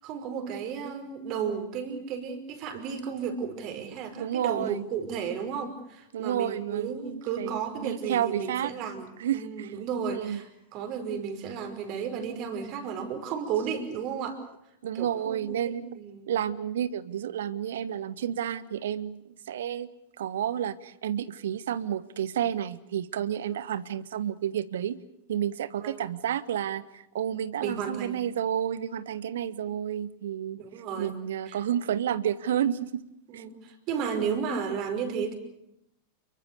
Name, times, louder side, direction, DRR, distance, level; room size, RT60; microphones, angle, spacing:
voice 1, 0.0-14.4 14.9-16.3 23.4-23.6 25.8-26.1 27.6-28.2 30.6-31.1 31.5-31.6 33.3-35.4, right 7 dB, 40° right, 7 dB, 5.2 m, -33 dB
voice 2, 3.9-4.9 6.1-8.7 9.2-9.7 10.1-10.4 14.8-15.9 16.3-19.9 20.2-25.0 25.3-30.6 31.0-33.0 33.3-33.4, right 10 dB, 60° right, 17 dB, 1.3 m, -31 dB
29.5 x 23.0 x 6.8 m, 0.80 s
figure-of-eight pair, 90°, 0 cm